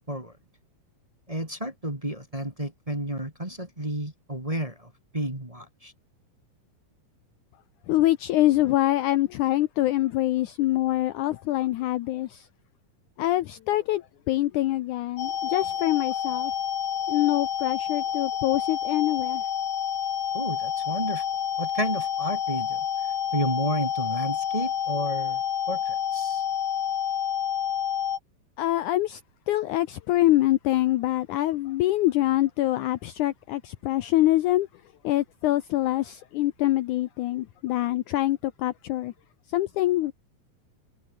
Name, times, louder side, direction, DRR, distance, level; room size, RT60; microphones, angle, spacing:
voice 1, 1.3-5.9 20.3-21.2 21.6-22.8 23.3-25.4 25.7-26.4, right 1 dB, 10° right, 2.5 m, -31 dB
voice 2, 7.9-12.5 13.2-16.5 17.1-19.4 28.6-29.2 29.5-34.7 35.0-39.1 39.5-40.1, left 15 dB, 75° left, 2.0 m, -25 dB
sound 1, 15.2-28.2, left 9 dB, 55° left, 2.8 m, -29 dB
omnidirectional pair, 4.1 m